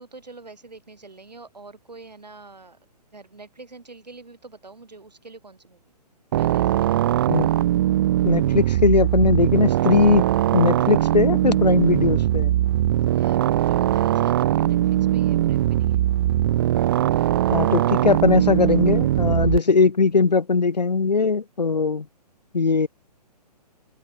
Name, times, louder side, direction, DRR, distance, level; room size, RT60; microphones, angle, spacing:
voice 1, 0.0-2.8 3.1-5.9 6.4-7.2 13.1-16.0, right 3 dB, 80° right, 5.6 m, -45 dB
sound 1, 6.3-19.6, right 13 dB, 35° right, 0.5 m, -20 dB
voice 2, 8.2-10.3 10.5-12.5 17.5-22.1 22.5-22.9, left 4 dB, 80° left, 0.8 m, -20 dB
figure-of-eight pair, 125°, 21 cm